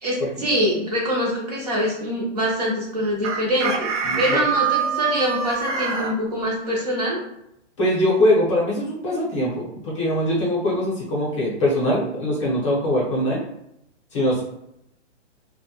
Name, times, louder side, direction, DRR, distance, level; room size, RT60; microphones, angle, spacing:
voice 1, 0.0-7.2, equal, 35° right, -3 dB, 0.5 m, -24 dB
Chicken rooster, 3.2-6.1, right 6 dB, 75° right, 0.6 m, -24 dB
voice 2, 7.8-13.4 14.1-14.4, left 1 dB, 25° left, -5 dB, 0.7 m, -22 dB
2.2 x 2.1 x 2.8 m, 0.79 s
hypercardioid pair, 160°, 36 cm